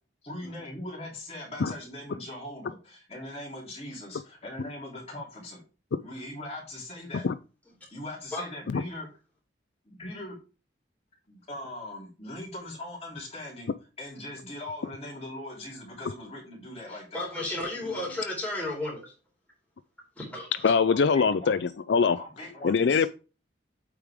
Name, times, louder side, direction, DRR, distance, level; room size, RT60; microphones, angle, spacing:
voice 1, 0.2-5.6 6.0-7.3 7.9-9.1 9.8-10.3 11.3-13.7 14.0-17.2 20.9-21.5 22.1-23.1, left 1 dB, 35° left, 3.1 m, -40 dB
voice 2, 16.9-19.1 20.2-20.8, left 1 dB, 10° left, 3.8 m, -33 dB
voice 3, 20.6-22.2 22.6-23.1, left 5 dB, 75° left, 0.4 m, -22 dB
8.6 x 4.9 x 3.5 m
head